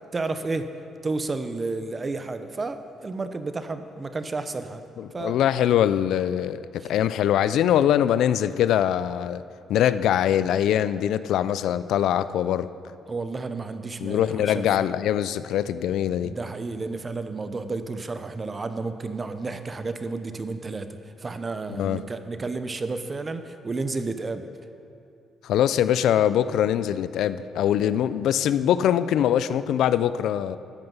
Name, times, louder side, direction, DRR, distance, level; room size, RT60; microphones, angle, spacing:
voice 1, 0.1-0.7 1.0-4.8 5.1-5.4 6.8-6.9 13.1-14.9 16.2-24.5, right 3 dB, 30° right, 10 dB, 0.8 m, -31 dB
voice 2, 5.0-9.4 9.7-12.7 14.0-16.3 21.8-22.0 25.4-30.6, left 10 dB, 80° left, 14 dB, 0.4 m, -23 dB
13.5 x 9.2 x 5.5 m, 2.6 s
cardioid pair, 90°, 0 cm